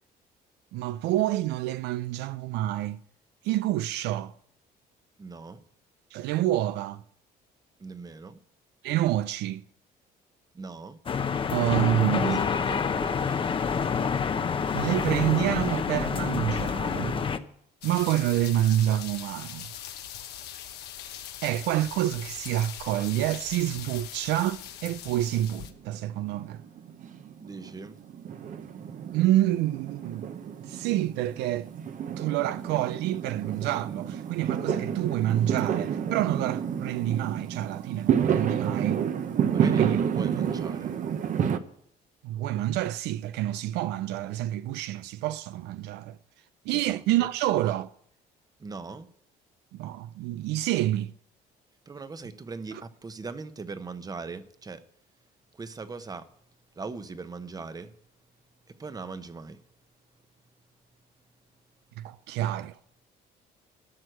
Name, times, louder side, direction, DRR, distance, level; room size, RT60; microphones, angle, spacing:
voice 1, 0.7-3.0 3.4-4.3 6.1-7.0 8.8-9.6 11.5-12.4 14.7-17.2 17.8-19.7 21.4-26.6 29.1-30.3 30.7-31.7 32.2-39.0 39.8-40.0 42.2-46.2 46.7-47.9 49.7-51.1 62.0-62.8, right 14 dB, 85° right, 0.4 m, -28 dB
voice 2, 5.2-5.6 7.8-8.4 10.5-11.0 12.3-13.6 27.4-28.0 39.5-41.0 46.7-47.3 48.6-49.1 51.9-54.9 55.5-56.3 56.7-58.0 58.7-59.6, right 4 dB, 20° right, 0.9 m, -40 dB
sound 1, 11.1-17.4, left 6 dB, 30° left, 0.7 m, -27 dB
Rain gutter effect Outside edition, 17.8-25.7, left 10 dB, 75° left, 1.2 m, -41 dB
Fireworks, 25.1-26.1 26.3-41.6, right 8 dB, 50° right, 0.9 m, -30 dB
12.5 x 6.2 x 9.1 m
cardioid pair, 110°, 17 cm